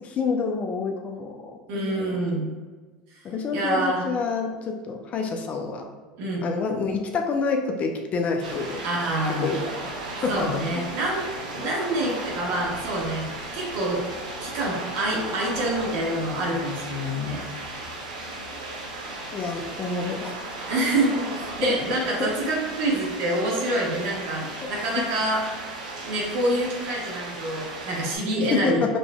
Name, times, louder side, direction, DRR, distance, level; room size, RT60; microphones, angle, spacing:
voice 1, 0.0-2.2 3.2-5.8 6.4-8.8 9.3-9.9 10.2-10.6 19.3-20.4 21.6-22.3 28.5-28.9, left 4 dB, 35° left, 3 dB, 0.6 m, -28 dB
voice 2, 1.7-2.5 3.5-4.0 6.2-6.4 8.8-9.5 10.3-14.0 14.4-17.4 20.7-25.4 26.0-29.0, right 1 dB, 60° right, -3 dB, 1.4 m, -27 dB
sound 1, 8.4-28.2, right 2 dB, 85° right, 0.9 m, -36 dB
5.2 x 3.0 x 2.3 m, 1.4 s
hypercardioid pair, 95°, 4 cm